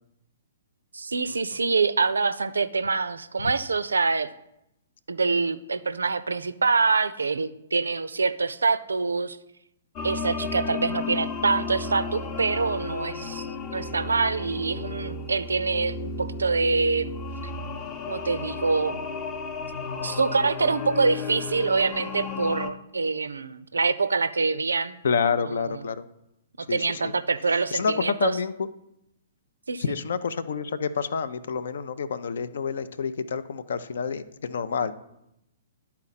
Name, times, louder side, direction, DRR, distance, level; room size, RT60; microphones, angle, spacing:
voice 1, 0.9-4.3 5.1-9.4 10.0-17.1 18.0-19.0 20.0-25.0 25.5-25.8 26.6-28.3 29.7-29.8, right 4 dB, 75° right, 14 dB, 0.4 m, -25 dB
sound 1, 10.0-22.7, left 4 dB, 25° left, 0.7 m, -33 dB
voice 2, 25.0-26.1 26.7-27.1 27.7-28.5 29.8-34.9, left 6 dB, 60° left, 14 dB, 0.5 m, -28 dB
10.5 x 4.3 x 4.1 m, 0.83 s
figure-of-eight pair, 115°, 0 cm